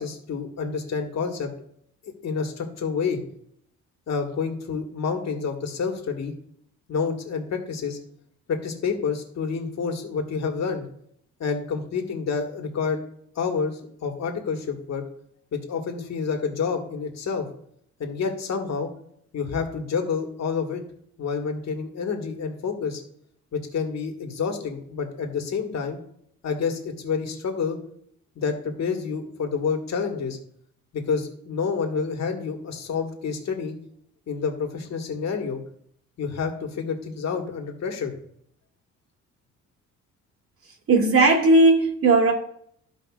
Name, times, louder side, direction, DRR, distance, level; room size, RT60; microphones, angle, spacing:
voice 1, 0.0-1.5 2.2-3.2 4.1-6.3 6.9-8.0 8.5-10.9 11.4-13.0 13.3-15.0 15.5-17.5 18.0-18.9 19.3-20.8 21.2-23.0 23.5-26.0 26.4-27.8 28.3-30.4 30.9-33.7 34.3-35.6 36.2-38.1, left 5 dB, 60° left, 1.7 m, -28 dB
voice 2, 40.9-42.3, right 2 dB, 50° right, 2.0 m, -17 dB
14.0 x 5.2 x 2.4 m
cardioid pair, 90°, 30 cm